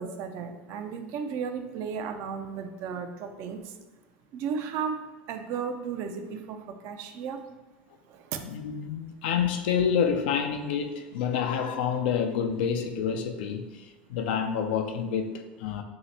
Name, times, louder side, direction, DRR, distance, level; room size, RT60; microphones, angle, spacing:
voice 1, 0.0-3.7 4.3-6.6 6.8-7.5 8.1-8.4, right 6 dB, 55° right, 6 dB, 0.4 m, -34 dB
voice 2, 8.4-15.8, left 7 dB, 70° left, 6 dB, 0.4 m, -28 dB
3.1 x 2.8 x 4.1 m, 1.3 s
hypercardioid pair, 80°, 6 cm